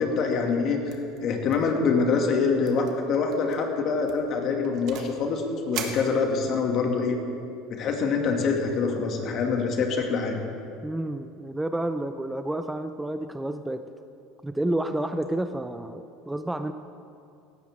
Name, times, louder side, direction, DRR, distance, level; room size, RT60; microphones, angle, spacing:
voice 1, 0.0-7.2 7.7-10.4, left 4 dB, 50° left, 2 dB, 2.4 m, -25 dB
sound 1, 0.9-1.2 1.5-1.8 2.0-2.1 2.6-2.9 3.3-3.6 4.1-5.2 5.7-6.7, right 8 dB, 60° right, 1.8 m, -39 dB
voice 2, 10.8-13.8 14.4-16.7, right 1 dB, 10° right, 9 dB, 0.6 m, -30 dB
17.5 x 14.0 x 3.7 m, 2.5 s
hypercardioid pair, 90°, 0 cm